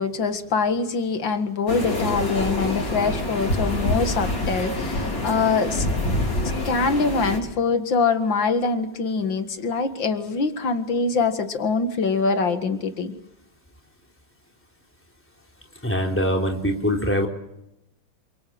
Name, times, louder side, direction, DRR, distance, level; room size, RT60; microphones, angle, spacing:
voice 1, 0.0-5.9 6.6-13.1, left 4 dB, 85° left, 8 dB, 2.6 m, -24 dB
sound 1, 1.7-7.4, left 1 dB, 70° left, 5.6 m, -26 dB
voice 2, 15.8-17.3, equal, 5° left, 2 dB, 3.7 m, -23 dB
29.0 x 23.0 x 7.9 m, 0.85 s
omnidirectional pair, 2.0 m